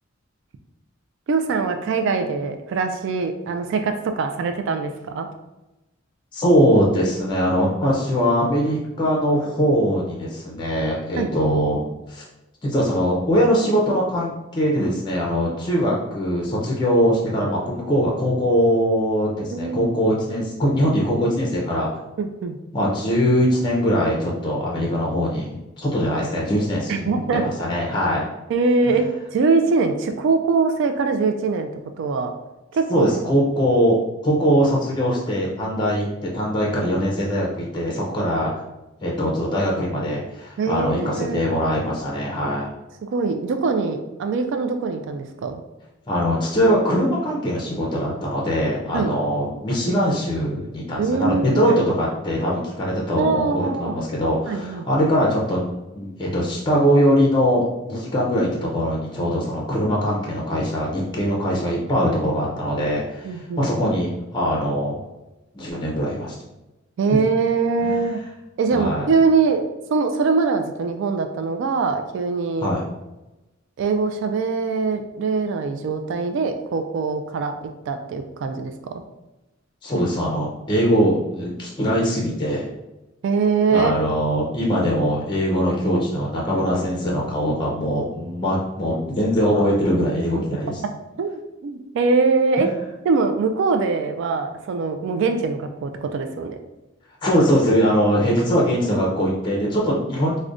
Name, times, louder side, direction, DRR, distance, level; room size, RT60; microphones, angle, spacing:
voice 1, 1.3-5.3 11.2-11.3 19.5-19.9 22.2-22.6 26.9-27.5 28.5-29.1 29.3-31.7 32.0-32.3 32.7-33.2 40.6-41.5 43.0-45.6 48.9-49.1 51.0-51.7 53.2-54.0 54.5-55.0 63.2-63.7 67.0-68.2 68.6-72.7 73.8-77.5 77.9-78.7 83.2-83.9 91.2-91.3 91.6-92.7 93.0-96.6, right 4 dB, 65° right, 6 dB, 0.3 m, -22 dB
voice 2, 6.3-12.2 12.6-21.9 22.7-28.3 32.9-38.5 39.0-42.7 46.1-65.0 65.5-66.4 67.1-67.2 67.8-68.0 68.7-69.1 72.6-72.8 79.8-82.7 83.7-90.8 92.6-92.7 97.2-100.4, equal, 25° left, -3 dB, 0.5 m, -22 dB
4.8 x 2.1 x 2.5 m, 1.0 s
head